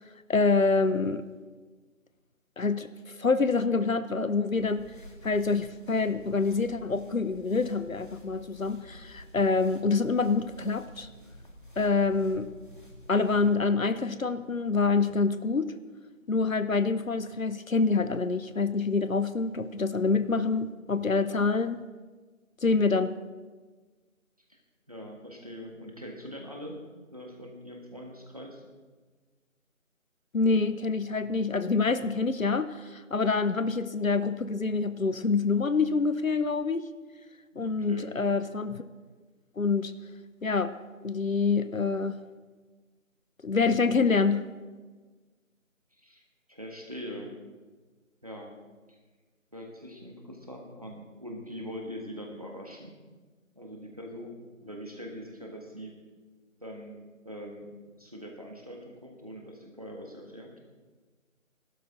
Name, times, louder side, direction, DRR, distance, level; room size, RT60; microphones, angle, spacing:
voice 1, 0.3-1.2 2.6-2.9 3.2-4.9 5.2-11.1 11.8-12.5 13.1-15.7 16.3-21.8 22.6-23.1 30.3-36.8 37.6-38.8 39.6-39.9 40.4-40.7 41.0-42.2 43.4-44.5, left 4 dB, 75° left, 13 dB, 0.9 m, -26 dB
sound 1, 4.5-13.6, equal, 40° left, 1.6 m, -50 dB
voice 2, 24.9-26.8 27.1-28.6 37.5-38.2 46.0-46.2 46.5-47.4 48.2-48.5 49.5-53.0 53.5-55.9 56.6-57.0 57.2-60.5, equal, 25° right, 0 dB, 1.6 m, -42 dB
18.5 x 12.0 x 3.8 m, 1.3 s
figure-of-eight pair, 175°, 41 cm